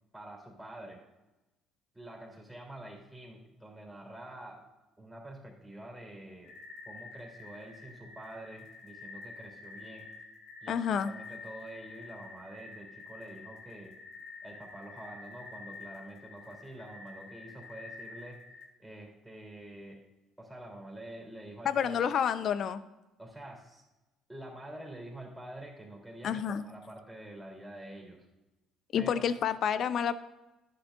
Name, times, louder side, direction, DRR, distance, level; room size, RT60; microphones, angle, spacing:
voice 1, 0.1-1.0 1.9-4.6 5.0-6.5 6.9-10.1 10.6-13.9 14.4-18.4 18.8-20.0 20.4-22.1 23.2-23.8 24.3-28.3 29.0-29.2, right 1 dB, 5° right, -2 dB, 3.4 m, -47 dB
sound 1, 6.4-18.7, left 3 dB, 75° left, 1.4 m, -49 dB
voice 2, 10.7-11.1 21.6-22.8 26.2-26.6 28.9-30.1, left 8 dB, 60° left, 14 dB, 0.5 m, -29 dB
11.5 x 9.8 x 2.6 m, 1.0 s
hypercardioid pair, 65°, 0 cm